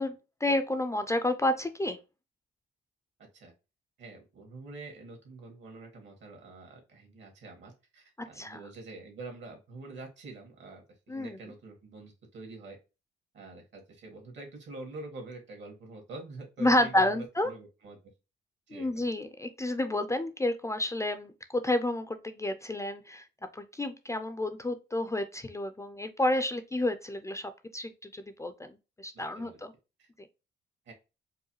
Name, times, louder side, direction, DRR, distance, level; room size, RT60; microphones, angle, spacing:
voice 1, 0.0-2.0 8.4-8.6 11.1-11.4 16.6-17.5 18.7-23.3 23.5-29.7, left 1 dB, 15° left, 9 dB, 0.4 m, -30 dB
voice 2, 4.0-12.8 13.3-18.0 18.7-19.1 29.1-29.6 30.0-30.1 30.9-31.0, right 3 dB, 65° right, 3 dB, 1.7 m, -46 dB
4.7 x 2.3 x 3.0 m, 0.28 s
cardioid pair, 90°, 20 cm